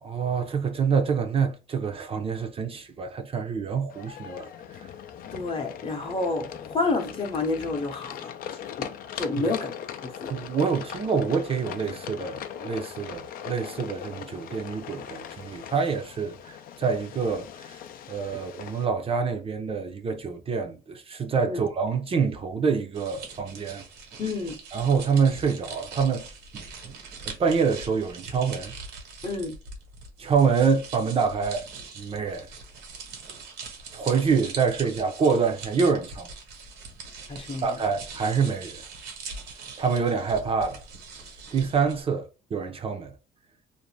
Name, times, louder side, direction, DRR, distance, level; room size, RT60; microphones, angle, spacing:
voice 1, 0.0-4.5 9.4-9.6 10.3-17.8 18.1-23.8 24.7-26.2 26.5-26.6 27.2-28.7 30.2-31.7 32.0-32.5 33.9-36.3 37.6-38.8 39.8-40.8 41.5-43.1, right 5 dB, 35° right, 0.5 m, -26 dB
sound 1, 3.9-18.9, left 9 dB, 60° left, 0.4 m, -40 dB
voice 2, 5.3-8.3 8.8-8.9 9.2-9.7 10.0-10.3 21.4-21.6 24.2-24.6 29.2-29.5 37.3-37.8, left 3 dB, 35° left, 0.8 m, -29 dB
sound 2, 22.9-42.0, right 4 dB, 90° right, 1.1 m, -42 dB
2.5 x 2.1 x 3.1 m
cardioid pair, 110°, 17 cm